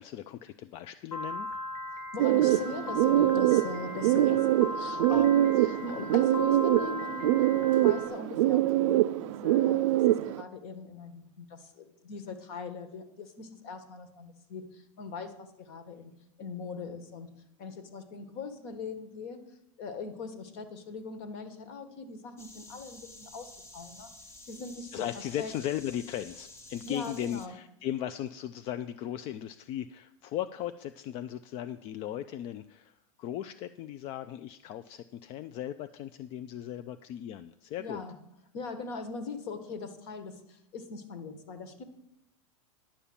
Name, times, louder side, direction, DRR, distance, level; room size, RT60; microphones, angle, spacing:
voice 1, 0.0-1.5 4.3-4.4 5.1-5.3 24.9-38.0, left 11 dB, 35° left, 11 dB, 0.3 m, -37 dB
Piano, 1.1-8.1, left 1 dB, 70° left, 1.9 m, -38 dB
voice 2, 2.1-7.4 7.8-16.1 16.4-17.3 17.6-19.4 19.8-24.1 24.5-25.0 25.4-25.5 26.8-27.5 37.8-38.2 38.5-41.8, left 4 dB, 50° left, 10 dB, 1.4 m, -40 dB
sound 1, 2.2-10.4, right 14 dB, 65° right, 0.4 m, -24 dB
sound 2, 22.4-27.5, left 2 dB, 15° left, 0.9 m, -50 dB
10.0 x 5.6 x 8.6 m, 0.82 s
supercardioid pair, 145°, 17 cm